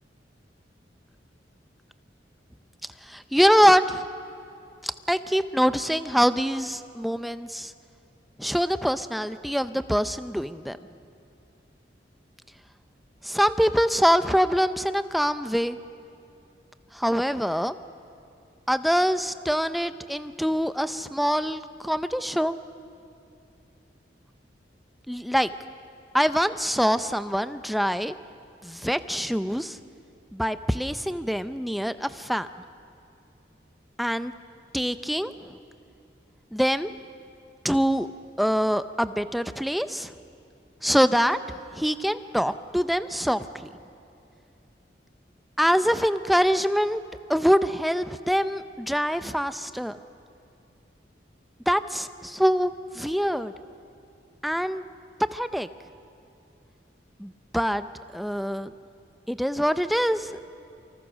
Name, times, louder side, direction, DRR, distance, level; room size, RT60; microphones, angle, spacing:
voice 1, 3.0-4.0 4.8-7.7 8.4-10.8 13.2-15.8 16.9-17.7 18.7-22.6 25.1-25.5 26.1-28.1 28.6-29.8 30.3-32.5 34.0-34.3 34.7-35.5 36.5-36.9 37.6-38.1 38.4-40.1 40.8-41.4 41.7-43.5 45.6-47.0 47.3-50.0 51.7-53.5 54.4-54.8 55.3-55.7 57.2-57.9 58.1-58.7 59.3-60.3, equal, ahead, 11 dB, 0.5 m, -24 dB
28.0 x 25.5 x 6.3 m, 2.6 s
head